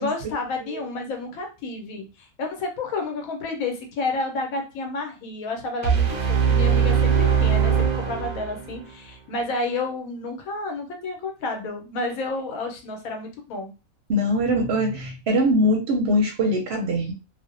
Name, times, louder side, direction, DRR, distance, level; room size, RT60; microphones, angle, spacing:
voice 1, 0.0-13.7, left 3 dB, 85° left, 3 dB, 1.1 m, -30 dB
sound 1, 5.8-8.8, right 7 dB, 80° right, 0.4 m, -21 dB
voice 2, 14.1-17.1, equal, 65° right, 2 dB, 0.7 m, -22 dB
2.5 x 2.0 x 2.5 m, 0.31 s
omnidirectional pair, 1.4 m